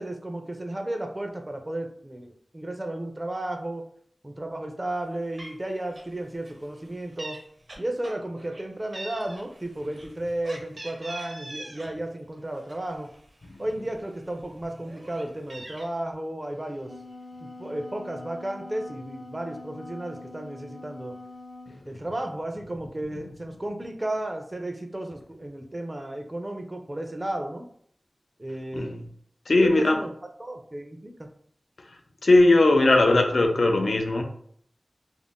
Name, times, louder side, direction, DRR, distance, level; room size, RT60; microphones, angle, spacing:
voice 1, 0.0-3.8 4.2-7.4 7.8-13.1 13.6-16.9 17.4-21.2 21.8-27.7 28.4-28.9 29.6-30.1 30.4-31.3, right 1 dB, 25° right, 4 dB, 0.4 m, -33 dB
Meow, 5.0-5.1 5.4-5.6 5.9-6.2 6.4-7.4 7.7-8.6 8.9-11.9 12.3-13.4 13.9-14.0 14.3-15.9, right 1 dB, 65° right, 0.7 m, -42 dB
Wind instrument woodwind instrument, 16.6-21.8, left 2 dB, 40° left, 0.7 m, -44 dB
voice 2, 29.5-30.0 32.2-34.2, left 2 dB, 70° left, 4 dB, 0.4 m, -19 dB
2.5 x 2.1 x 3.5 m, 0.62 s
wide cardioid pair, 75°, 0 cm